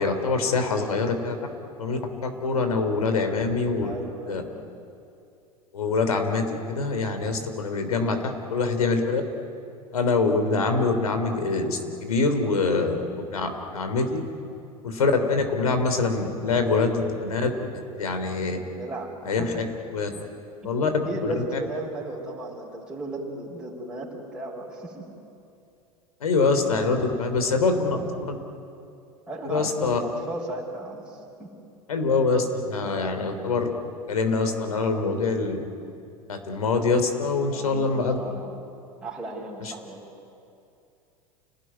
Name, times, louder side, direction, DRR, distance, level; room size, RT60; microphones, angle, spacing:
voice 1, 0.0-1.4 1.8-3.9 4.3-4.4 5.7-8.2 8.5-9.2 9.9-14.1 14.8-17.5 18.0-18.6 19.3-19.5 19.9-20.1 20.6-20.9 21.2-21.4 26.2-28.0 28.3-28.4 29.4-30.0 31.9-33.7 34.1-35.6 36.3-38.2 39.6-39.7, left 4 dB, 70° left, 6 dB, 3.4 m, -24 dB
voice 2, 3.8-4.7 18.8-19.1 19.4-19.5 20.1-20.2 20.6-20.7 21.0-25.0 29.3-31.5 37.5-38.6 39.0-40.1, right 2 dB, 5° right, -6 dB, 5.8 m, -35 dB
29.0 x 19.0 x 9.7 m, 2.6 s
figure-of-eight pair, 85°, 19 cm